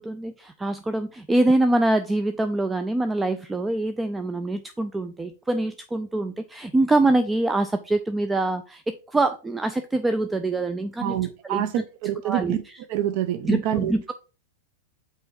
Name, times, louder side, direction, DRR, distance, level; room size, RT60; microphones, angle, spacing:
voice 1, 0.0-11.2 11.4-11.7 12.2-12.6 13.4-14.1, right 2 dB, 10° right, 0.4 m, -24 dB
voice 2, 11.0-12.6 12.9-14.1, right 12 dB, 55° right, 0.8 m, -27 dB
5.7 x 4.5 x 5.2 m
supercardioid pair, 135°, 0 cm